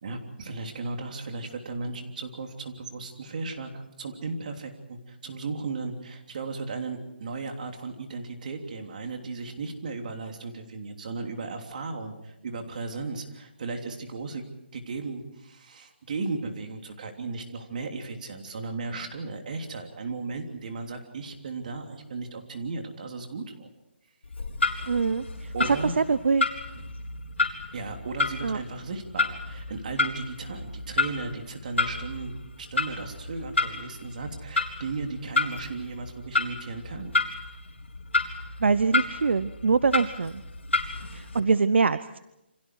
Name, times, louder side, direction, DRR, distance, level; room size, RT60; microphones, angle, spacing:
voice 1, 0.0-14.4 14.7-23.7 25.5-25.9 26.7-26.9 27.7-37.2, right 3 dB, 45° right, 4 dB, 3.2 m, -36 dB
Clock, 24.2-41.4, left 3 dB, 85° left, 3.9 m, -31 dB
voice 2, 24.9-26.5 28.4-28.6 38.6-40.4 41.1-42.2, right 4 dB, 70° right, 15 dB, 0.8 m, -24 dB
28.5 x 25.5 x 4.8 m, 0.90 s
hypercardioid pair, 170°, 6 cm